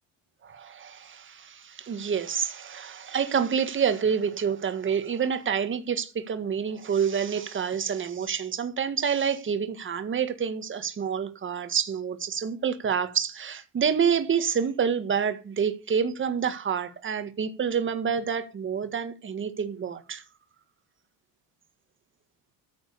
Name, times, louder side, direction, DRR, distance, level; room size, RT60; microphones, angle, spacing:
voice 1, 0.4-20.2, right 7 dB, 30° right, 1.7 m, -28 dB
14.0 x 7.8 x 6.8 m
cardioid pair, 145°, 40 cm